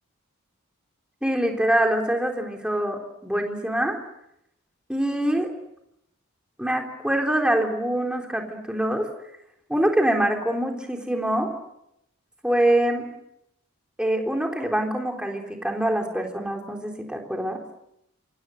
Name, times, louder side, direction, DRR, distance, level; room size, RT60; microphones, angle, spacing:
voice 1, 1.2-4.0 4.9-5.5 6.6-9.1 9.7-11.5 12.4-13.1 14.0-17.6, right 1 dB, 5° right, 2 dB, 3.8 m, -24 dB
28.0 x 26.5 x 6.5 m, 0.79 s
head